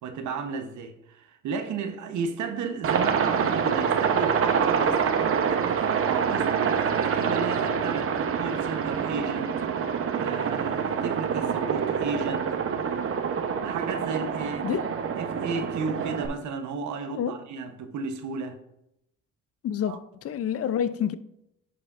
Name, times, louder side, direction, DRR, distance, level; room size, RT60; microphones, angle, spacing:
voice 1, 0.0-12.6 13.6-14.8 15.2-18.6 19.9-20.0, right 5 dB, 75° right, 0.9 m, -34 dB
Aircraft, 2.8-16.3, right 7 dB, 45° right, 0.8 m, -26 dB
voice 2, 19.6-21.2, left 9 dB, 50° left, 0.5 m, -28 dB
9.9 x 5.0 x 2.4 m
cardioid pair, 90°, 30 cm